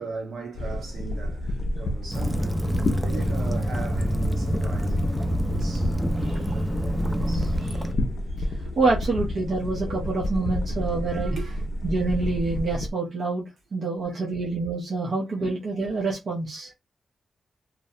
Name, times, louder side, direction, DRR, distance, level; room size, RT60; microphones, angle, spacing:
voice 1, 0.0-2.6 3.0-8.0 8.3-8.8 10.4-10.5 11.3-11.6 15.0-15.5, right 3 dB, 80° right, 1.0 m, -39 dB
sound 1, 0.6-12.9, left 1 dB, 60° left, 0.5 m, -30 dB
Waves surf / Splash splatter / Trickle dribble, 2.1-7.9, equal, 5° right, 0.3 m, -27 dB
voice 2, 8.8-11.3 11.8-13.4 13.7-16.7, right 3 dB, 55° right, 0.6 m, -26 dB
2.5 x 2.0 x 2.6 m
wide cardioid pair, 130°, 0 cm